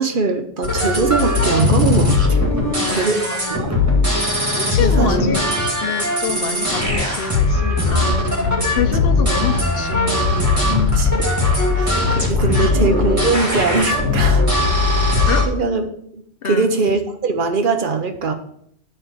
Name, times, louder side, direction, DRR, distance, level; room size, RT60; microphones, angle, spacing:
voice 1, 0.0-2.4 2.7-3.8 4.2-4.4 4.8-5.3 11.0-11.2 11.7-14.5 15.5-15.9 16.1-18.3, right 4 dB, 50° right, 6 dB, 0.9 m, -21 dB
sound 1, 0.6-15.4, left 2 dB, 15° right, 2.0 m, -18 dB
voice 2, 2.5-3.4 4.6-5.4 5.8-11.0 12.6-12.8 13.1-13.2 15.3-15.5 16.4-16.7, left 6 dB, 55° left, 7 dB, 0.9 m, -27 dB
8.9 x 3.3 x 6.7 m, 0.70 s
omnidirectional pair, 1.3 m